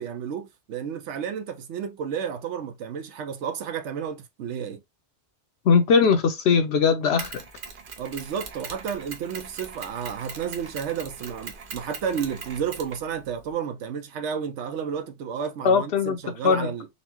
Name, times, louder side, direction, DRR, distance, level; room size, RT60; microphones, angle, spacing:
voice 1, 0.0-4.8 8.0-16.9, right 7 dB, 80° right, 1.0 m, -32 dB
voice 2, 5.7-7.4 15.6-16.2 16.4-16.7, left 5 dB, 70° left, 0.8 m, -20 dB
Mechanisms, 7.2-13.5, right 5 dB, 55° right, 0.8 m, -40 dB
4.2 x 2.1 x 2.8 m
omnidirectional pair, 1.2 m